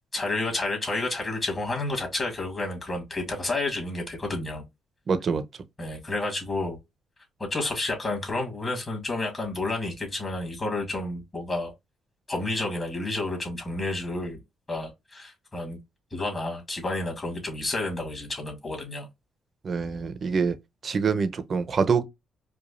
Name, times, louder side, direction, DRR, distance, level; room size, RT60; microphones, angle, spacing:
voice 1, 0.1-4.6 5.8-6.8 7.4-11.7 12.3-14.4 14.7-15.8 16.1-19.1, left 2 dB, 25° left, 2.2 m, -30 dB
voice 2, 5.1-5.4 19.6-20.6 20.8-22.0, right 5 dB, 45° right, 0.7 m, -25 dB
4.9 x 2.4 x 2.5 m
cardioid pair, 90°, 0 cm